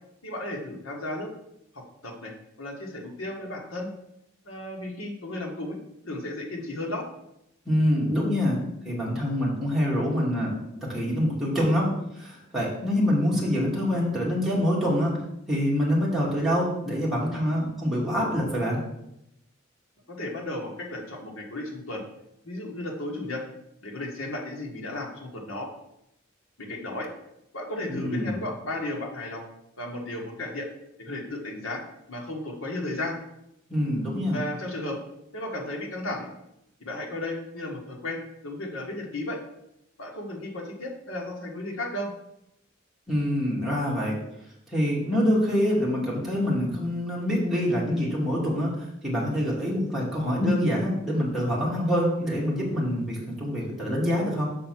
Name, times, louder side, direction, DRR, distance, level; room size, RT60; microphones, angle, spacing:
voice 1, 0.2-1.3 1.7-2.3 2.6-3.9 4.4-5.8 6.1-7.1 20.1-22.0 22.4-23.5 23.8-25.7 26.6-27.1 27.5-29.4 29.8-30.7 31.0-31.8 32.1-33.2 34.3-35.0 35.3-36.3 36.8-39.4 40.0-42.1, left 1 dB, 75° left, 1 dB, 1.6 m, -34 dB
voice 2, 7.7-8.6 8.8-11.9 12.1-15.2 15.5-18.8 27.9-28.4 33.7-34.4 43.1-44.1 44.7-54.5, equal, ahead, -6 dB, 2.4 m, -25 dB
6.6 x 4.5 x 6.0 m, 0.82 s
head